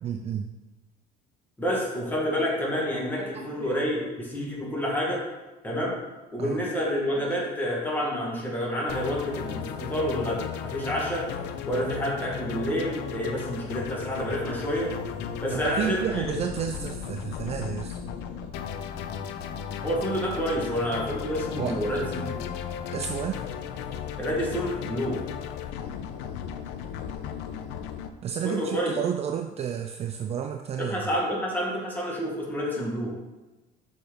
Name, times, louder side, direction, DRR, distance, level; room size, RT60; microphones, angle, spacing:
voice 1, 0.0-0.5 3.2-3.8 6.4-6.6 7.1-7.3 15.5-18.0 21.6-21.8 22.9-23.4 28.2-31.1, right 8 dB, 35° right, 5 dB, 0.4 m, -31 dB
voice 2, 1.6-5.2 5.6-6.0 6.3-11.2 11.6-14.9 15.4-16.3 19.8-22.4 24.2-25.2 28.4-29.0 30.8-33.1, equal, 10° left, -4 dB, 2.0 m, -29 dB
sound 1, 8.9-28.1, left 8 dB, 80° left, 0.7 m, -36 dB
sound 2, 14.7-26.1, left 3 dB, 10° right, 2.8 m, -46 dB
6.5 x 5.7 x 5.1 m, 1.1 s
cardioid pair, 135°, 17 cm